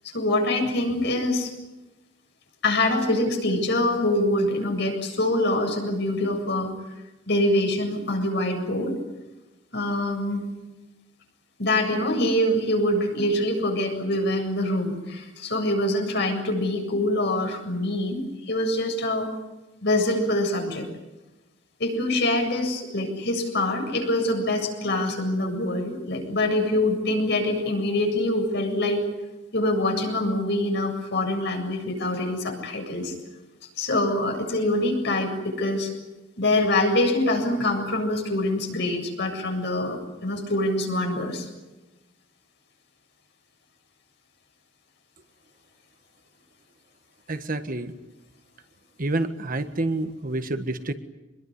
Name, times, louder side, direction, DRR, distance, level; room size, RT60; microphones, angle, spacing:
voice 1, 0.1-1.5 2.6-6.7 7.3-8.9 9.7-10.4 11.6-18.2 18.5-19.3 19.8-20.9 21.8-29.0 29.5-33.1 33.8-35.9 36.4-41.5, left 1 dB, 65° left, 3 dB, 7.7 m, -24 dB
voice 2, 47.3-47.9 49.0-50.9, right 2 dB, 45° right, 9 dB, 1.6 m, -28 dB
25.0 x 22.0 x 9.6 m, 1.1 s
head